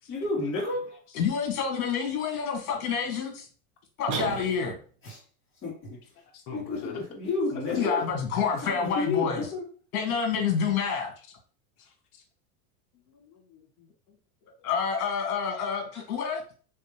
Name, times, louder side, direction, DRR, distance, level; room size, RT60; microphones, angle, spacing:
voice 1, 0.1-0.9 5.0-5.2 5.6-5.7 6.5-8.0 8.6-9.6, left 3 dB, 30° left, -3 dB, 2.1 m, -30 dB
voice 2, 1.1-3.5 4.0-4.8 7.7-9.5 9.9-11.1 14.6-16.5, left 6 dB, 70° left, 2 dB, 1.7 m, -28 dB
sound 1, 4.1-5.0, right 4 dB, 45° right, 1.5 m, -33 dB
voice 3, 5.9-7.0 7.5-8.1 10.9-11.0 11.8-12.2, left 3 dB, 50° left, 1 dB, 1.3 m, -41 dB
3.7 x 3.4 x 3.0 m, 0.40 s
supercardioid pair, 120°, 43 cm